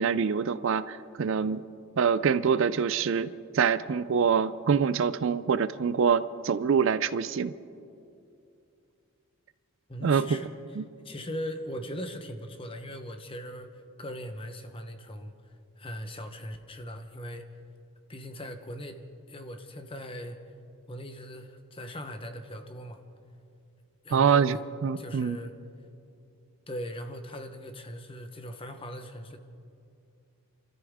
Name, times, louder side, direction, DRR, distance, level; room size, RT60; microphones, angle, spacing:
voice 1, 0.0-1.6 2.0-7.5 10.0-10.2 10.8-10.9 24.1-25.4, right 6 dB, 55° right, 15 dB, 0.4 m, -25 dB
voice 2, 9.9-10.5 11.0-15.3 15.8-17.4 18.1-19.0 19.3-20.4 20.9-23.0 24.0-24.6 25.0-25.5 26.7-29.4, equal, 25° left, 7 dB, 1.0 m, -39 dB
29.0 x 13.5 x 3.6 m, 2.6 s
head